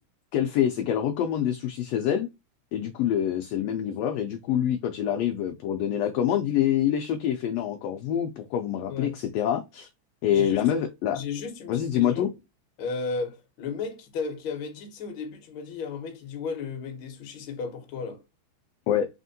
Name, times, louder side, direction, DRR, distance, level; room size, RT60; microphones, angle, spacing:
voice 1, 0.3-2.3 2.7-9.9 10.2-11.2 11.7-12.3 18.9-19.1, left 10 dB, 80° left, 1.5 m, -26 dB
voice 2, 8.9-9.2 10.3-10.6 11.1-12.3 12.8-18.2, left 5 dB, 65° left, 1.4 m, -34 dB
4.2 x 3.5 x 2.6 m
omnidirectional pair, 3.4 m